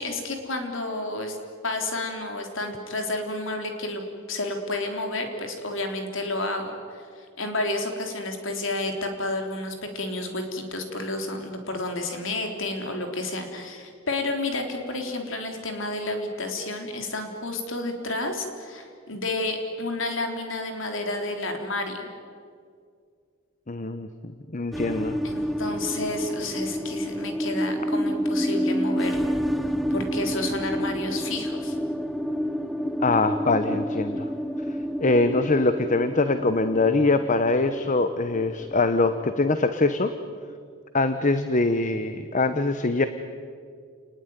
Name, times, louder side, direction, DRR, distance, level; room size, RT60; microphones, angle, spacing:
voice 1, 0.0-1.4 1.6-4.0 4.3-22.1 25.2-29.3 29.9-31.8, left 2 dB, 65° left, 4 dB, 3.7 m, -30 dB
voice 2, 23.7-25.2 33.0-34.2 35.0-40.1 40.9-43.1, left 3 dB, 40° left, 10 dB, 1.0 m, -23 dB
sound 1, 24.7-39.4, equal, ahead, 0.8 m, -29 dB
30.0 x 20.0 x 9.6 m, 2.2 s
head